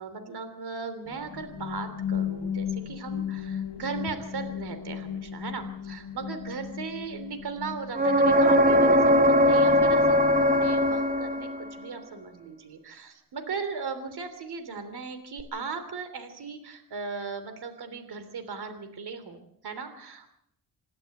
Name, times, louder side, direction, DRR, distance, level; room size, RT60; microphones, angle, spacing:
voice 1, 0.0-20.3, right 5 dB, 75° right, 9 dB, 3.3 m, -37 dB
sound 1, 1.1-8.9, left 8 dB, 75° left, 2.1 m, -35 dB
sound 2, 7.9-11.7 15.4-15.5, equal, 20° right, 1.3 m, -20 dB
28.0 x 12.0 x 7.9 m, 0.73 s
wide cardioid pair, 120°, 39 cm